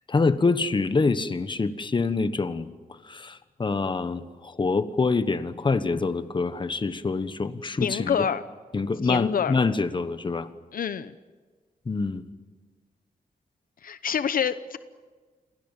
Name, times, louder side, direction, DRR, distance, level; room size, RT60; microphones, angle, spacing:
voice 1, 0.1-2.7 3.1-8.2 8.7-10.5 11.9-12.2, left 4 dB, 30° left, 12 dB, 1.3 m, -25 dB
voice 2, 7.8-8.4 9.0-9.6 10.7-11.1 13.8-14.8, left 7 dB, 70° left, 13 dB, 0.8 m, -27 dB
29.0 x 23.0 x 7.4 m, 1.4 s
wide cardioid pair, 110°, 15 cm